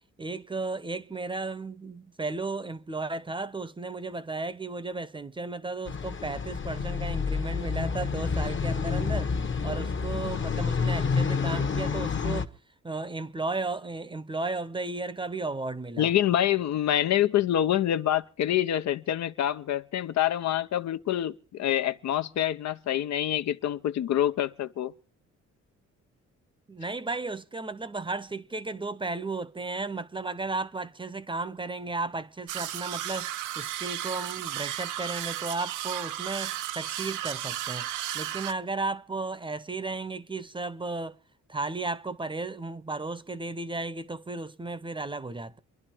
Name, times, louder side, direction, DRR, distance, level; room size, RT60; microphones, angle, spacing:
voice 1, 0.2-9.4 9.6-12.5 12.8-16.1 26.7-37.9 38.1-41.2 41.5-45.6, right 3 dB, 15° right, 0.8 m, -34 dB
sound 1, 5.9-12.4, left 5 dB, 40° left, 1.2 m, -29 dB
voice 2, 16.0-24.9, left 11 dB, 65° left, 0.7 m, -26 dB
sound 2, 32.5-38.5, right 12 dB, 85° right, 0.8 m, -34 dB
27.0 x 11.0 x 4.4 m
cardioid pair, 90°, 30 cm